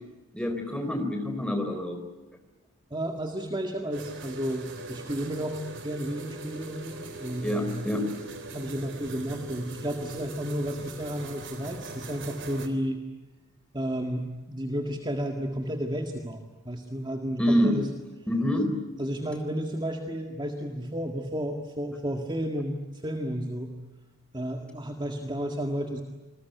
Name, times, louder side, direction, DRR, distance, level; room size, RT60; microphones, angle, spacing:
voice 1, 0.3-2.0 7.4-8.1 17.4-17.8 18.3-18.7, equal, 5° left, 5 dB, 4.0 m, -26 dB
voice 2, 2.9-7.9 8.5-13.0 13.7-17.9 18.4-18.6 19.0-23.7 24.3-26.0, equal, 20° right, 3 dB, 1.9 m, -32 dB
sound 1, 3.9-12.7, right 3 dB, 55° right, 3.5 m, -41 dB
27.5 x 21.0 x 9.3 m, 1.1 s
head